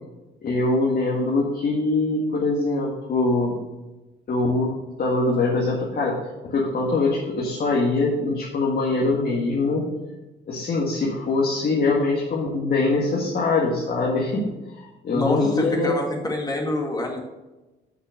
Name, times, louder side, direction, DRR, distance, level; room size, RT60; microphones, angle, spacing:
voice 1, 0.4-3.6 4.3-6.2 6.4-9.8 10.5-14.5 14.8-15.9, left 3 dB, 50° left, -3 dB, 1.9 m, -23 dB
voice 2, 15.1-17.2, left 1 dB, 20° left, 1 dB, 2.0 m, -26 dB
6.3 x 6.1 x 6.4 m, 1.1 s
cardioid pair, 90°, 20 cm